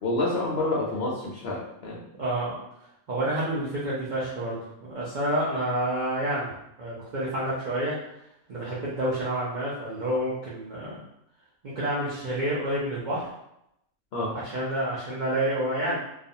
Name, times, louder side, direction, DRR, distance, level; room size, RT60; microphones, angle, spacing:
voice 1, 0.0-2.0 14.1-14.3, left 2 dB, 65° left, -5 dB, 0.6 m, -28 dB
voice 2, 2.2-2.6 3.1-6.5 6.8-8.0 8.5-11.0 11.6-13.3 14.3-16.0, right 1 dB, 65° right, -7 dB, 0.4 m, -29 dB
2.4 x 2.3 x 2.6 m, 0.82 s
omnidirectional pair, 1.5 m